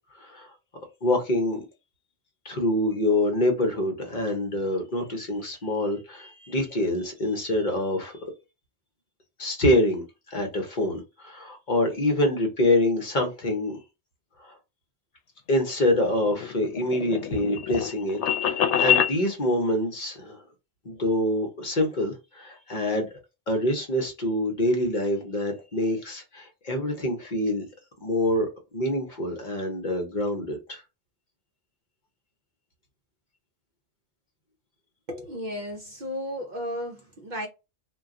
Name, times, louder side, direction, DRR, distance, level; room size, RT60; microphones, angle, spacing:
voice 1, 0.2-0.5 1.0-1.6 2.4-8.2 9.4-13.8 14.4-14.5 15.5-20.4 20.8-23.1 23.5-27.7 28.0-30.8, left 1 dB, 50° left, 0.8 m, -26 dB
sound 1, 16.1-19.1, left 9 dB, 90° left, 0.9 m, -25 dB
voice 2, 35.1-37.5, equal, 55° right, 0.6 m, -34 dB
2.3 x 2.2 x 3.6 m
omnidirectional pair, 1.1 m